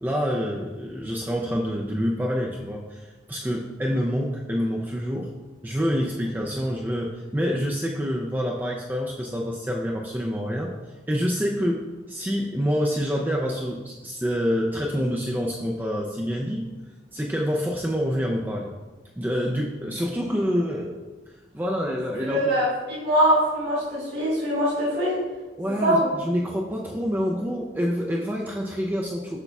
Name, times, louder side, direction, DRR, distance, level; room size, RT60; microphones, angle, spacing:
voice 1, 0.0-5.3 5.6-10.7 11.1-11.8 12.1-16.7 17.1-18.7 19.2-20.9 21.5-22.4 25.6-29.4, equal, 10° right, -1 dB, 0.4 m, -27 dB
voice 2, 22.2-25.1 25.8-26.1, equal, 70° right, -11 dB, 2.1 m, -23 dB
8.0 x 5.9 x 2.3 m, 1.2 s
head